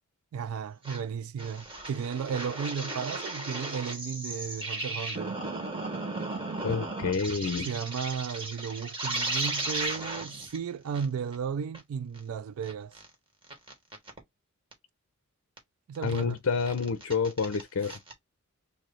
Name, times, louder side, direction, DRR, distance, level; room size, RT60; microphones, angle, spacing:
voice 1, 0.3-5.3 7.6-12.9 15.9-16.4, right 7 dB, 75° right, 0.3 m, -34 dB
sound 1, 0.8-1.0 1.4-10.6 10.9-11.0 11.3-11.4 11.7-11.8 12.2-12.3 12.6-13.1 13.5-14.2 14.7-14.8 15.6-15.7 15.9-16.2 16.6-18.1, right 2 dB, 25° right, 1.3 m, -35 dB
voice 2, 6.6-7.7 16.0-18.0, left 5 dB, 65° left, 0.5 m, -28 dB
3.1 x 2.7 x 3.9 m
head